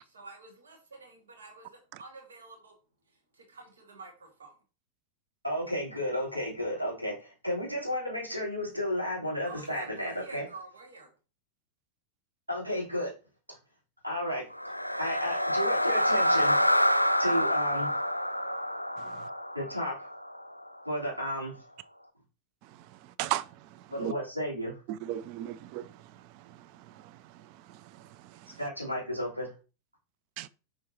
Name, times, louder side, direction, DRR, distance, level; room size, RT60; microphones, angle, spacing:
voice 1, 0.0-2.7 3.1-4.6 9.4-11.1, right 3 dB, 70° right, 1.9 m, -49 dB
voice 2, 5.4-10.4 12.5-13.1 13.5-13.6 14.0-14.4 15.0-16.6 17.2-17.9 19.5-20.1 20.8-21.6 23.9-24.8 28.6-29.5, equal, 90° right, 3.3 m, -33 dB
sound 1, 14.5-20.7, equal, 90° left, 0.4 m, -27 dB
voice 3, 19.0-19.3 23.2-23.5 24.0-24.1 25.0-25.9 30.4-30.5, right 13 dB, 45° right, 0.4 m, -34 dB
7.3 x 5.1 x 2.8 m
figure-of-eight pair, 90°, 0 cm